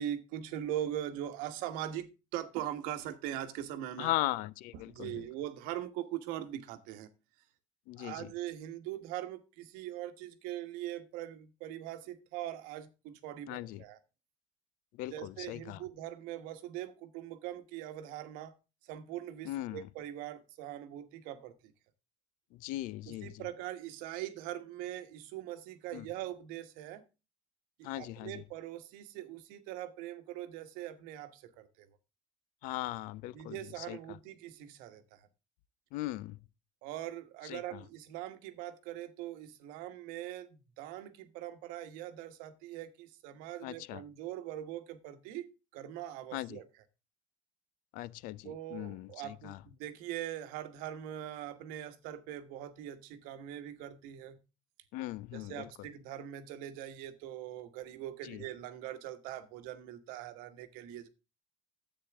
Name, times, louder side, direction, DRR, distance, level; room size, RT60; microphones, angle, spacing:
voice 1, 0.0-4.1 4.9-7.1 8.0-14.0 15.1-18.5 18.8-21.5 23.1-27.0 27.8-31.9 33.3-35.2 36.8-46.6 48.4-54.4 55.3-61.1, right 12 dB, 85° right, 1.2 m, -42 dB
voice 2, 4.0-5.3 7.9-8.3 13.5-13.8 14.9-15.8 19.4-19.9 22.5-23.5 25.9-26.1 27.8-28.4 32.6-34.2 35.9-36.4 37.4-37.8 43.6-44.0 46.3-46.6 47.9-49.6 54.9-55.9 58.2-58.4, left 16 dB, 75° left, 0.5 m, -39 dB
10.5 x 8.2 x 3.5 m
cardioid pair, 140°, 14 cm